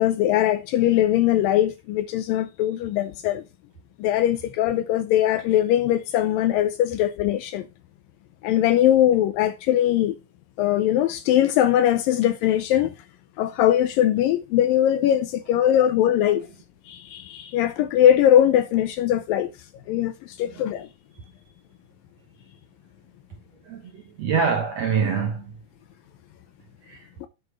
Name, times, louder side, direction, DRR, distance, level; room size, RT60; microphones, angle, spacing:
voice 1, 0.0-3.4 4.0-7.7 8.4-10.2 10.6-12.9 13.4-16.5 16.9-19.5 19.9-20.9, left 11 dB, 80° left, 2.0 m, -21 dB
voice 2, 20.4-20.7 23.6-25.5 26.8-27.1, right 6 dB, 65° right, 1.7 m, -26 dB
9.8 x 5.0 x 4.9 m
omnidirectional pair, 4.7 m